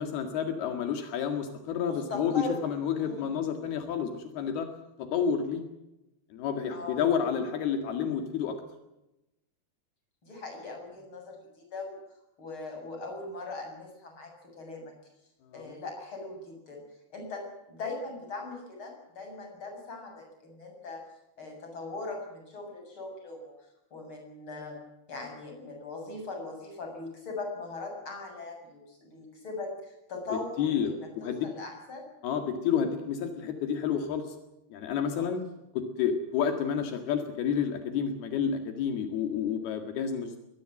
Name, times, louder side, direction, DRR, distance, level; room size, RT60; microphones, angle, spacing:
voice 1, 0.0-4.7 5.0-5.6 6.3-8.6 15.5-15.7 30.3-31.4 32.2-34.4 34.7-35.4 35.7-40.4, left 7 dB, 80° left, 6 dB, 3.9 m, -30 dB
voice 2, 1.9-2.6 3.0-3.3 6.7-7.0 10.2-12.0 12.4-14.9 15.5-16.8 17.1-17.4 17.7-21.0 21.4-23.5 23.9-24.8 25.1-30.9 31.2-32.1 35.2-35.3, left 3 dB, 30° left, 2 dB, 8.0 m, -40 dB
23.0 x 20.5 x 7.6 m, 0.92 s
omnidirectional pair, 4.4 m